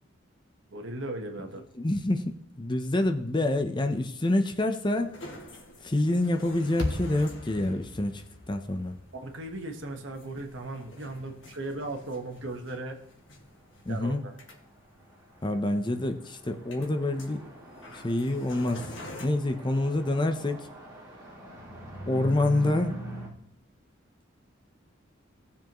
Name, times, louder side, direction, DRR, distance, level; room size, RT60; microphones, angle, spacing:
voice 1, 0.7-1.6 9.1-13.0 13.9-14.3, right 2 dB, 65° right, 4 dB, 1.4 m, -37 dB
voice 2, 1.8-5.2 5.8-8.2 8.5-9.0 13.9-14.2 15.4-17.4 18.0-18.9 19.2-20.6 22.1-23.0, left 1 dB, 25° left, 6 dB, 0.7 m, -27 dB
sound 1, 4.9-19.3, left 1 dB, 65° left, 1.8 m, -49 dB
sound 2, 6.8-11.1, left 1 dB, 80° left, 2.2 m, -39 dB
sound 3, 15.1-15.2 15.4-15.9 16.2-23.3, equal, 20° right, 4.3 m, -41 dB
18.0 x 7.1 x 3.0 m, 0.70 s
head